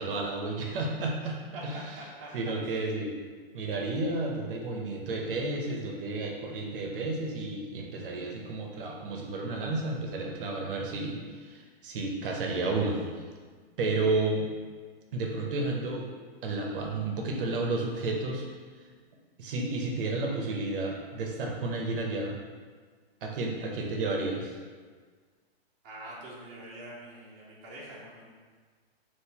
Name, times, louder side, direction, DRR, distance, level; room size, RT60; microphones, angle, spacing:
voice 1, 0.0-1.8 2.3-3.2 3.5-13.0 13.8-14.5 15.1-16.1 16.4-18.5 19.4-22.4 23.2-24.6, right 2 dB, 60° right, 0 dB, 0.6 m, -31 dB
voice 2, 1.5-2.3 2.6-2.8 25.8-28.3, right 1 dB, 25° right, -6 dB, 0.5 m, -44 dB
3.7 x 2.5 x 2.8 m, 1.5 s
hypercardioid pair, 150°, 31 cm